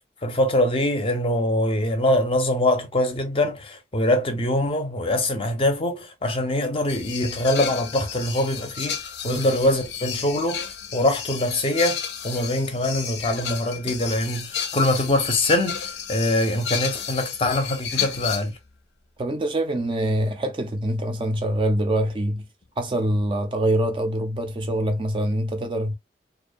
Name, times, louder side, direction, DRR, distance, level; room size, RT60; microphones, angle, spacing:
voice 1, 0.2-18.5, left 1 dB, 30° left, 0.5 m, -23 dB
sound 1, 6.9-18.5 22.6-22.7 23.2-23.3 24.5-24.6, left 8 dB, 85° left, 0.5 m, -32 dB
voice 2, 19.2-22.4 22.8-25.9, right 1 dB, 30° right, 0.3 m, -24 dB
2.4 x 2.2 x 2.4 m
head